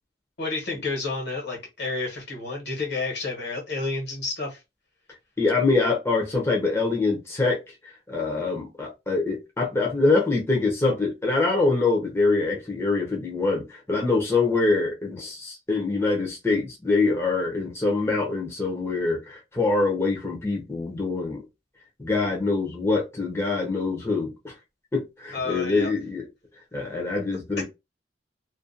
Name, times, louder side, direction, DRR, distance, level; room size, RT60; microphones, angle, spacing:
voice 1, 0.4-4.6 25.3-25.9, left 3 dB, 70° left, 1.1 m, -30 dB
voice 2, 5.4-7.6 8.1-21.4 22.0-24.5 24.9-26.2 26.7-27.6, left 3 dB, 15° left, 0.5 m, -24 dB
2.4 x 2.2 x 2.5 m
head